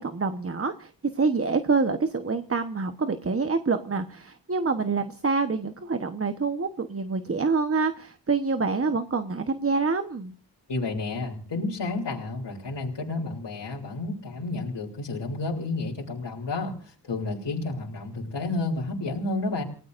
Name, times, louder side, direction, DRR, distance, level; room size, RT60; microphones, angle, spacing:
voice 1, 0.0-10.3, right 4 dB, 35° right, 8 dB, 1.2 m, -26 dB
voice 2, 10.7-19.6, left 2 dB, 80° left, -3 dB, 3.4 m, -31 dB
30.0 x 17.5 x 2.6 m, 0.42 s
wide cardioid pair, 95°, 42 cm